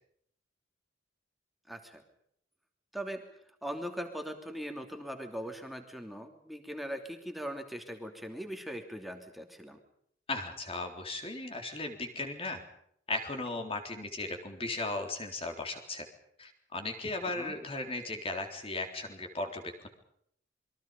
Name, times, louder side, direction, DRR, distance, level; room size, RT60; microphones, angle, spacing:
voice 1, 1.7-2.0 2.9-3.2 3.6-9.8 17.2-17.5, equal, ahead, 4 dB, 3.0 m, -40 dB
voice 2, 10.3-12.6 13.1-16.1 16.4-19.9, left 2 dB, 30° left, 4 dB, 3.8 m, -36 dB
28.0 x 23.0 x 5.4 m, 0.70 s
head